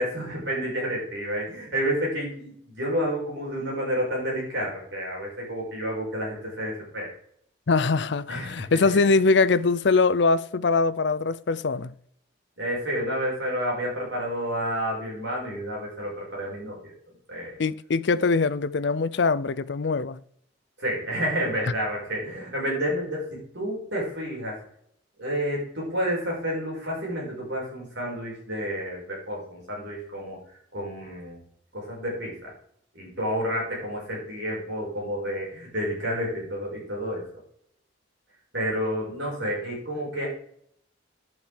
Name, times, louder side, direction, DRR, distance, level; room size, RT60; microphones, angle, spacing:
voice 1, 0.0-7.1 8.3-9.1 12.6-16.9 17.3-17.6 20.8-24.6 25.2-30.4 30.7-31.4 31.7-32.5 32.9-37.2 38.5-40.3, equal, 65° right, 5.9 m, -30 dB
voice 2, 7.7-11.9 17.6-20.2, left 4 dB, 65° left, 0.5 m, -22 dB
10.5 x 8.4 x 5.0 m
head